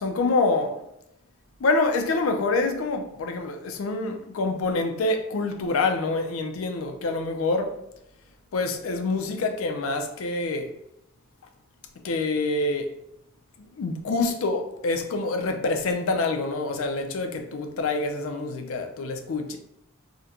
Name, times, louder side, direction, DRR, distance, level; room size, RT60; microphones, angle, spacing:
voice 1, 0.0-0.8 1.6-7.8 8.5-10.7 12.0-12.9 13.7-19.6, left 3 dB, 75° left, 0.5 m, -26 dB
3.7 x 2.1 x 2.8 m
head